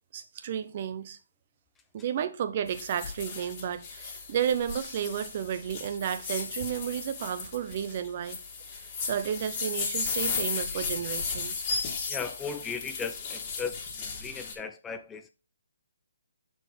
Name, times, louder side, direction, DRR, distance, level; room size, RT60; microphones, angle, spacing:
voice 1, 0.1-1.2 1.9-8.4 8.7-11.7, right 9 dB, 40° right, 0.7 m, -32 dB
sound 1, 2.7-14.5, left 5 dB, 30° left, 1.8 m, -35 dB
voice 2, 12.1-15.3, left 6 dB, 10° left, 0.4 m, -37 dB
6.3 x 4.3 x 5.0 m
hypercardioid pair, 155°, 0 cm